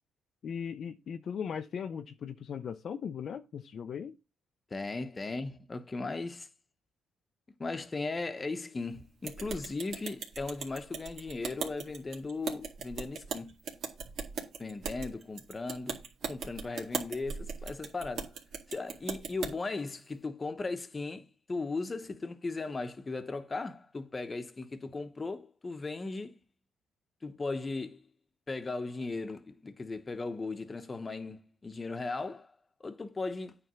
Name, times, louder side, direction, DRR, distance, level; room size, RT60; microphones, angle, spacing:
voice 1, 0.4-4.2, left 7 dB, 60° left, 0.6 m, -38 dB
voice 2, 4.7-6.5 7.6-13.5 14.6-16.0 16.3-18.3 18.7-26.3 27.2-28.0 28.5-32.5 32.8-33.6, left 3 dB, 25° left, 1.0 m, -37 dB
sound 1, 9.2-19.5, right 6 dB, 70° right, 2.1 m, -39 dB
9.2 x 3.5 x 6.9 m
cardioid pair, 90°, 0 cm